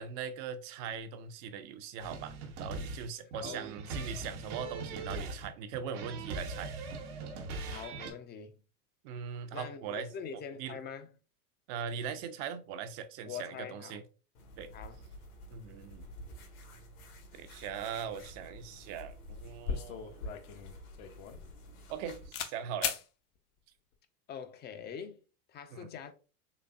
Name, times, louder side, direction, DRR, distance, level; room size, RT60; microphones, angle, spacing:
voice 1, 0.0-6.7 9.0-10.8 11.7-14.0 14.6-14.7 15.5-16.1 17.3-20.2 21.9-22.9 25.7-25.9, right 7 dB, 45° right, 0.7 m, -40 dB
sound 1, 2.0-8.1, right 3 dB, 75° right, 1.2 m, -40 dB
voice 2, 7.7-8.6 9.5-11.1 13.2-14.0 14.7-15.0 24.3-25.2 25.5-26.1, left 7 dB, 25° left, 0.5 m, -44 dB
sound 2, 14.3-22.3, equal, 75° left, 1.5 m, -50 dB
sound 3, 18.9-19.1 19.3-22.0 22.3-22.5 22.8-23.0, left 8 dB, 55° left, 0.8 m, -37 dB
4.0 x 3.2 x 2.4 m
hypercardioid pair, 95°, 45 cm